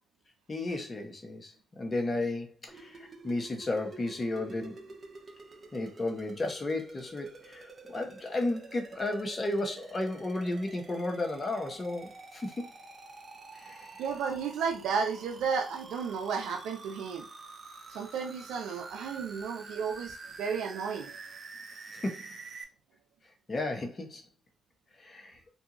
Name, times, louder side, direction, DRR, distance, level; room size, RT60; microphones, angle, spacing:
voice 1, 0.5-4.9 5.7-12.7 13.5-14.0 21.9-22.2 23.5-24.2 25.0-25.4, left 2 dB, 35° left, 0.9 m, -33 dB
sound 1, 2.7-22.6, right 3 dB, 45° right, 0.7 m, -48 dB
voice 2, 14.0-17.3 17.9-21.2, right 6 dB, 80° right, 0.4 m, -33 dB
2.6 x 2.4 x 2.8 m
supercardioid pair, 60°, 0 cm